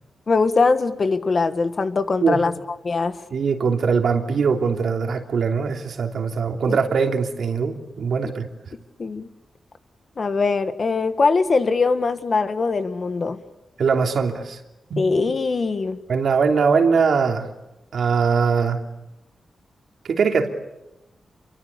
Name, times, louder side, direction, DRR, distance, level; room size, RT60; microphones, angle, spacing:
voice 1, 0.3-2.5 2.8-3.2 6.7-6.8 8.2-8.3 9.0-9.3 10.2-13.4 15.0-16.0, left 4 dB, 40° left, 10 dB, 1.6 m, -21 dB
voice 2, 3.3-8.5 13.8-14.6 14.9-15.0 16.1-17.5 17.9-18.8 20.0-20.5, right 5 dB, 70° right, 4 dB, 3.1 m, -21 dB
29.5 x 23.5 x 8.5 m, 0.95 s
wide cardioid pair, 140°, 0 cm